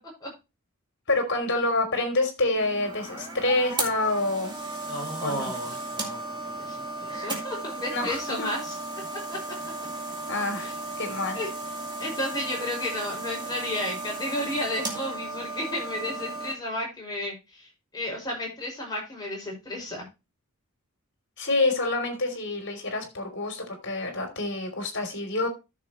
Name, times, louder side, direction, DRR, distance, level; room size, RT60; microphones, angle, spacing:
voice 1, 1.1-4.5 5.2-5.4 7.9-8.5 10.3-11.4 21.4-25.5, left 2 dB, 55° left, 5 dB, 3.3 m, -27 dB
sound 1, 2.6-16.5, right 2 dB, 20° right, 2.2 m, -35 dB
voice 2, 4.9-8.8 9.3-9.5 10.5-10.7 11.3-11.5 12.0-20.1, left 1 dB, 20° left, -2 dB, 5.7 m, -33 dB
13.0 x 6.7 x 3.1 m, 0.26 s
head